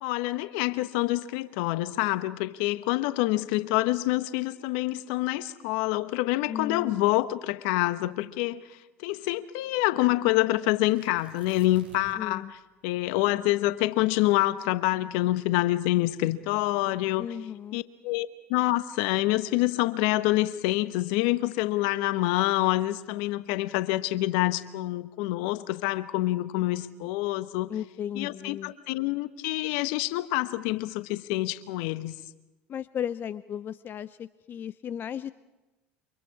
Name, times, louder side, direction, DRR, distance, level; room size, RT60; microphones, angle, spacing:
voice 1, 0.0-8.6 9.0-12.4 12.8-17.3 17.7-27.7 28.1-32.1, left 17 dB, 70° left, 1.2 m, -27 dB
voice 2, 6.5-7.1 12.2-12.5 17.2-17.8 27.7-28.7 32.7-35.3, left 9 dB, 40° left, 0.7 m, -35 dB
Tearing, 10.9-12.3 12.6-12.7 13.2-15.6 16.3-16.7, right 4 dB, 90° right, 6.5 m, -55 dB
29.0 x 26.0 x 4.8 m
hypercardioid pair, 75°, 5 cm